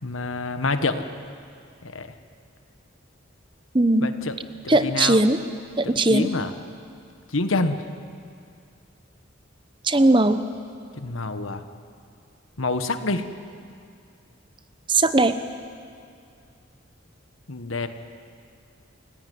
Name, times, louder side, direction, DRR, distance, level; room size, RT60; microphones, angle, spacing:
voice 1, 0.0-1.0 1.8-2.1 4.0-4.4 4.6-5.2 5.8-6.5 7.3-7.8 11.0-11.6 12.6-13.3 17.5-17.9, left 3 dB, 85° left, 9 dB, 1.4 m, -27 dB
voice 2, 3.7-4.1 4.7-5.4 5.8-6.3 9.8-10.4 14.9-15.3, right 2 dB, 25° right, 11 dB, 0.9 m, -18 dB
28.0 x 17.0 x 9.5 m, 2.4 s
head